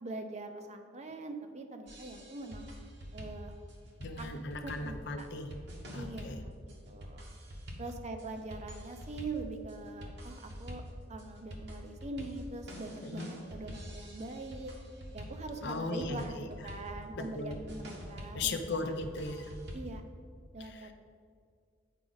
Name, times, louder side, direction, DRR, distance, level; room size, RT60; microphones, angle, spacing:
voice 1, 0.0-2.8 3.1-3.5 4.2-4.3 4.6-5.3 5.9-7.3 7.8-10.8 11.1-14.7 15.1-18.9 19.3-20.0 20.5-20.9, right 2 dB, 35° right, 6 dB, 0.6 m, -43 dB
sound 1, 1.9-20.0, equal, 60° right, 1.1 m, -46 dB
voice 2, 4.0-5.5 5.9-6.4 13.0-13.3 15.6-16.5 17.2-17.6 18.3-19.5 20.6-20.9, left 3 dB, 60° left, 6 dB, 0.6 m, -37 dB
8.2 x 4.8 x 3.9 m, 2.1 s
head